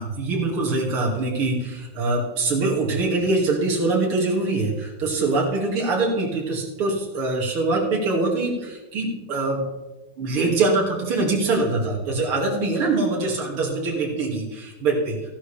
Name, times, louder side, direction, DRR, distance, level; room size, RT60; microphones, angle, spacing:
voice 1, 0.0-9.7 10.2-15.2, right 3 dB, 80° right, -1 dB, 3.2 m, -23 dB
15.5 x 11.0 x 3.3 m, 1.1 s
omnidirectional pair, 2.4 m